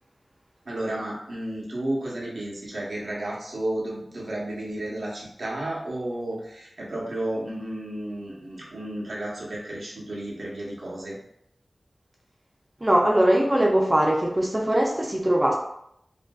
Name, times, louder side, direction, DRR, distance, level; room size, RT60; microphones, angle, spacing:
voice 1, 0.6-11.2, right 1 dB, 85° right, -5 dB, 0.8 m, -32 dB
voice 2, 12.8-15.5, right 1 dB, 25° right, -1 dB, 0.4 m, -21 dB
2.6 x 2.5 x 2.2 m, 0.77 s
wide cardioid pair, 90°, 0 cm